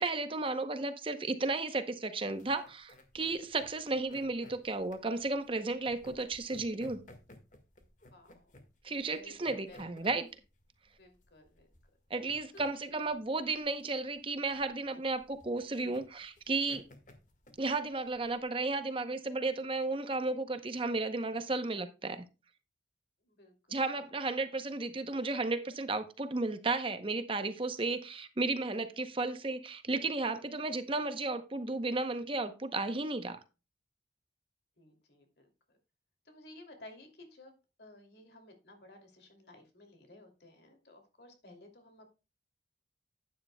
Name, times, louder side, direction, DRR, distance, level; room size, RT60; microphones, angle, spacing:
voice 1, 0.0-7.0 8.8-10.3 12.1-16.9 17.6-22.2 23.7-33.4, right 3 dB, 30° right, 0.7 m, -34 dB
sound 1, 2.3-18.4, left 1 dB, 45° left, 1.7 m, -57 dB
voice 2, 8.1-8.5 9.1-9.3 9.7-9.9 11.0-11.7 12.5-13.0 23.3-23.8 34.8-35.8 36.2-42.1, left 1 dB, 65° left, 2.6 m, -55 dB
12.0 x 9.5 x 2.2 m
head